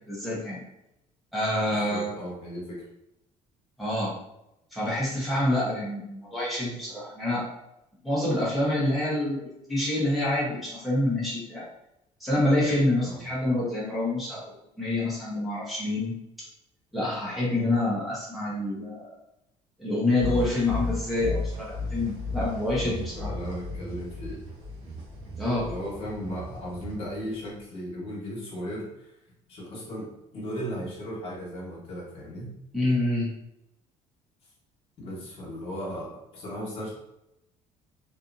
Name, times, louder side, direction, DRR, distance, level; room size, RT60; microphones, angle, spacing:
voice 1, 0.1-0.6 1.3-2.2 3.8-4.1 4.7-7.5 8.0-11.7 12.2-16.1 16.9-19.1 19.8-23.3 25.4-25.7 32.7-33.3, left 1 dB, ahead, -8 dB, 1.0 m, -27 dB
voice 2, 1.7-2.8 13.0-13.2 22.8-24.4 25.6-29.1 29.5-32.5 35.0-36.9, equal, 45° left, -5 dB, 1.1 m, -36 dB
sound 1, 20.2-27.6, left 2 dB, 45° right, 0.7 m, -35 dB
2.7 x 2.5 x 2.5 m, 0.85 s
cardioid pair, 165°, 14 cm